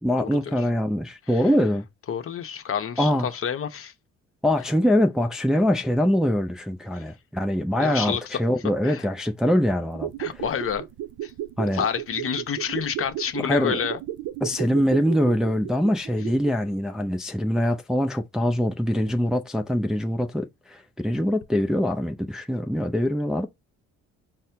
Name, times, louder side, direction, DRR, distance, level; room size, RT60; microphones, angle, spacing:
voice 1, 0.0-1.9 3.0-3.3 4.4-10.4 11.6-11.8 13.4-13.8 14.4-23.5, equal, ahead, 0.4 m, -23 dB
voice 2, 2.1-3.9 6.9-7.0 7.8-8.4 8.8-9.0 10.2-10.8 11.2-11.3 11.7-14.0, left 8 dB, 45° left, 0.8 m, -28 dB
sound 1, 9.8-16.7 17.0-17.1, right 12 dB, 75° right, 0.5 m, -34 dB
4.2 x 2.1 x 3.4 m
cardioid pair, 90°, 30 cm